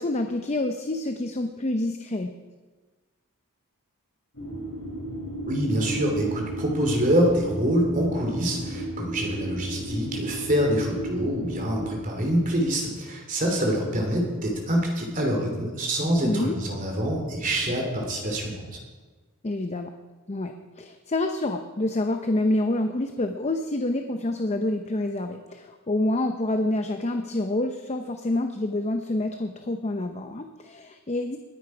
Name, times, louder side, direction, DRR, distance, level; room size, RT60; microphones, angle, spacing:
voice 1, 0.0-2.3 16.2-16.6 19.4-19.9 20.3-31.4, left 1 dB, 30° left, 6 dB, 0.6 m, -27 dB
sound 1, 4.3-11.9, right 1 dB, 60° left, 3.7 m, -34 dB
voice 2, 5.5-18.7, equal, 35° right, 1 dB, 3.3 m, -25 dB
20.5 x 9.4 x 4.9 m, 1.3 s
head